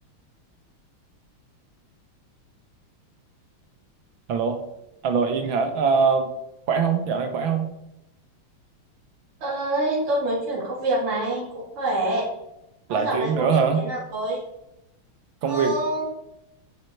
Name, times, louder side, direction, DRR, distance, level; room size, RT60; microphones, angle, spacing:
voice 1, 4.3-4.6 5.0-6.3 6.7-7.7 12.9-13.8 15.4-15.7, right 5 dB, 70° right, 7 dB, 1.6 m, -22 dB
voice 2, 9.4-12.3 12.9-14.4 15.4-16.1, right 1 dB, 90° right, -6 dB, 3.8 m, -26 dB
11.0 x 7.4 x 4.6 m, 0.89 s
omnidirectional pair, 2.4 m